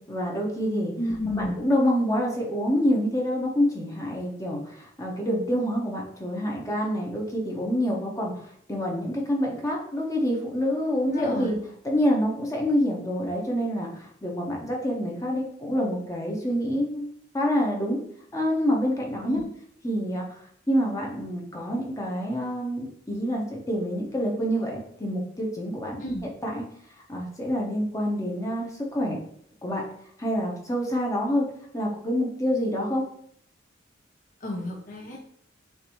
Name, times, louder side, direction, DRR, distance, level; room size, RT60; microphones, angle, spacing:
voice 1, 0.1-0.9 1.3-11.6 11.8-17.0 17.3-18.0 18.3-19.4 19.8-20.4 20.7-26.0 26.4-26.6 27.1-29.2 29.6-29.8 30.2-31.5 31.7-33.0, equal, 15° left, -1 dB, 0.9 m, -27 dB
voice 2, 1.0-1.5 11.0-11.5 19.2-19.4 26.0-26.2 34.4-35.2, left 1 dB, 40° left, -2 dB, 0.7 m, -31 dB
6.6 x 2.6 x 3.0 m, 0.67 s
head